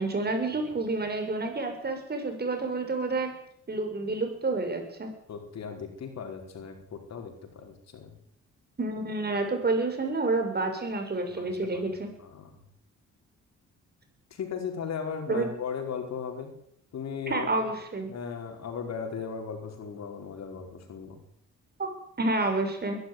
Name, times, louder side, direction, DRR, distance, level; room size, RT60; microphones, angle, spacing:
voice 1, 0.0-3.3 3.7-5.1 8.8-12.1 15.3-15.5 17.3-18.1 21.8-21.9 22.2-23.0, right 2 dB, 30° right, 5 dB, 7.1 m, -29 dB
voice 2, 5.3-8.1 11.3-11.9 12.2-12.5 14.3-16.5 16.9-17.7 18.1-21.2, left 6 dB, 60° left, 5 dB, 4.9 m, -37 dB
21.5 x 13.0 x 9.7 m, 0.74 s
cardioid pair, 90°, 30 cm